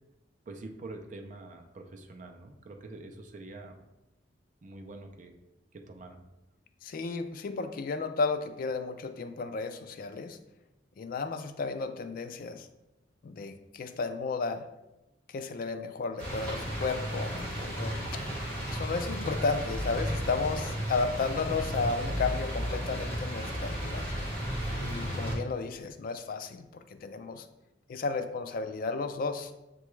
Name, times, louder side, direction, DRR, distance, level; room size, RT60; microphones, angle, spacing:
voice 1, 0.5-3.8 4.6-5.3 5.7-6.2, right 2 dB, 45° right, 4 dB, 0.4 m, -45 dB
voice 2, 6.8-10.4 11.0-12.7 13.2-14.7 15.3-18.2 18.7-24.1 24.7-27.5 27.9-29.5, left 4 dB, 50° left, 8 dB, 0.3 m, -33 dB
sound 1, 16.2-25.4, equal, 10° left, 1.5 m, -34 dB
6.7 x 2.3 x 3.1 m, 0.94 s
head